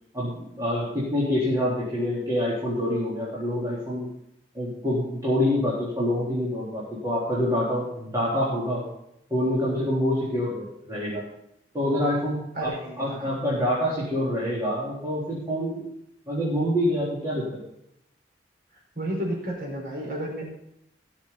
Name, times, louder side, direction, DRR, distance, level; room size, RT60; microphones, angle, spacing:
voice 1, 0.1-4.1 4.5-8.9 9.3-11.2 11.7-12.7 13.0-15.9 16.3-17.5, left 1 dB, 20° right, -8 dB, 3.7 m, -26 dB
voice 2, 12.5-13.4 18.9-20.4, right 1 dB, 60° right, -2 dB, 5.1 m, -32 dB
19.0 x 7.3 x 4.0 m, 0.79 s
head